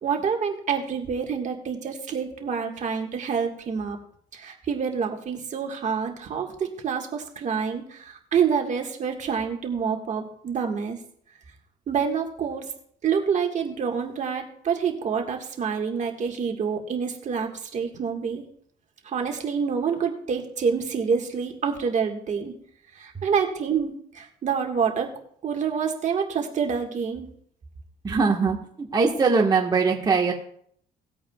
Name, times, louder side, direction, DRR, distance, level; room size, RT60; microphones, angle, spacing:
voice 1, 0.0-4.0 4.3-11.0 11.9-12.7 13.0-18.4 19.0-22.5 22.9-25.1 25.4-27.3, right 6 dB, 45° right, 3 dB, 1.7 m, -27 dB
voice 2, 28.0-30.3, right 4 dB, 25° right, 0 dB, 1.4 m, -21 dB
18.5 x 8.6 x 2.3 m, 0.63 s
cardioid pair, 110°, 17 cm